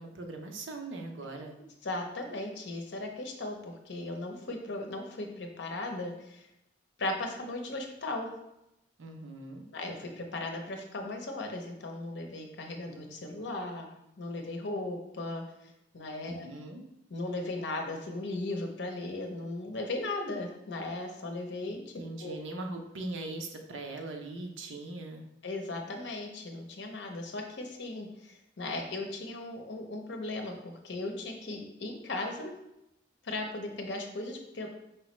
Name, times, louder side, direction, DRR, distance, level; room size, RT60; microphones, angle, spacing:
voice 1, 0.0-1.5 9.0-9.6 16.3-16.8 22.0-25.2, right 2 dB, 85° right, 3 dB, 0.6 m, -40 dB
voice 2, 1.8-6.5 7.0-8.3 9.7-13.9 14.2-16.5 17.1-21.9 22.2-22.4 25.4-32.5 33.2-34.7, left 2 dB, 65° left, 3 dB, 0.7 m, -37 dB
4.6 x 3.0 x 3.0 m, 0.86 s
head